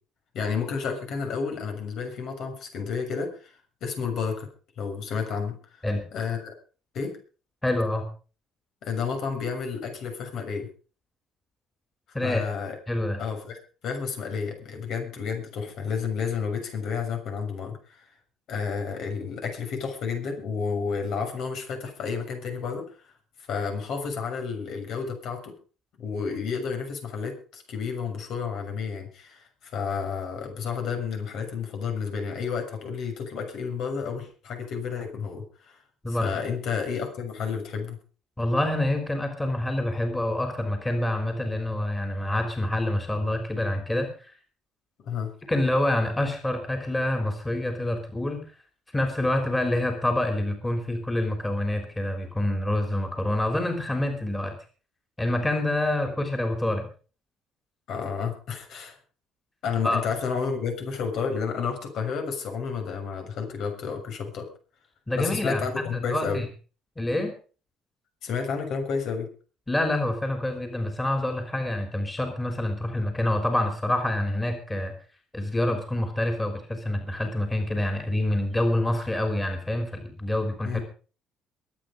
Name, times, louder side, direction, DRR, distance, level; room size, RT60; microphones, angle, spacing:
voice 1, 0.3-4.5 4.8-5.6 6.1-6.5 6.9-7.2 8.8-10.7 12.2-12.8 13.2-13.6 13.8-18.1 18.5-22.9 23.5-25.5 26.0-35.8 36.1-38.0 45.0-45.3 57.9-59.0 59.6-64.5 65.2-66.4 68.2-69.3 80.6-80.8, left 6 dB, 65° left, 4 dB, 6.6 m, -31 dB
voice 2, 7.6-8.1 12.1-12.4 12.9-13.2 36.0-36.3 38.4-44.3 45.5-48.4 48.9-54.5 55.2-56.9 59.8-60.0 65.1-66.4 67.0-67.3 69.7-74.9 75.3-80.8, left 1 dB, 10° left, 5 dB, 3.5 m, -27 dB
22.5 x 9.1 x 5.1 m, 0.38 s
cardioid pair, 120°, 0 cm